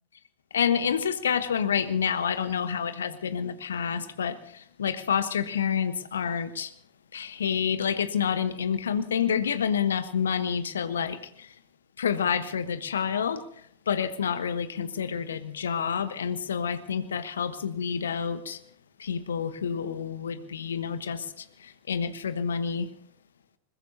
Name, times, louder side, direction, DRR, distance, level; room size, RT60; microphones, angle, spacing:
voice 1, 0.5-6.7 7.1-11.5 12.0-13.4 13.9-18.6 19.0-22.9, left 7 dB, 65° left, 12 dB, 1.1 m, -28 dB
21.0 x 21.0 x 2.8 m, 0.66 s
figure-of-eight pair, 90°, 0 cm